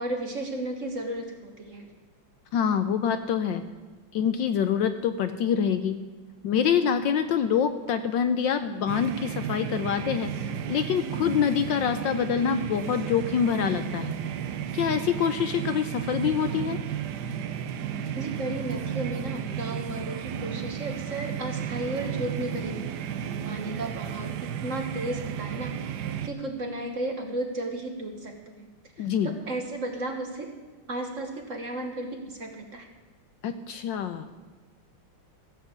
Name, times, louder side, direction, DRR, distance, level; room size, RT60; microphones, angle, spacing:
voice 1, 0.0-1.9 18.1-25.8 26.2-28.5 29.0-30.5 30.9-32.9, right 1 dB, 40° right, 4 dB, 1.5 m, -34 dB
voice 2, 2.5-3.6 4.1-6.0 6.4-10.3 10.7-14.2 14.7-16.8 29.0-29.3 33.4-34.2, left 7 dB, 70° left, 9 dB, 1.2 m, -25 dB
Japan Matsudo Pachinko Casino behind Closed Door, 8.9-26.3, right 9 dB, 65° right, 1.1 m, -33 dB
15.0 x 7.6 x 8.2 m, 1.3 s
omnidirectional pair, 2.4 m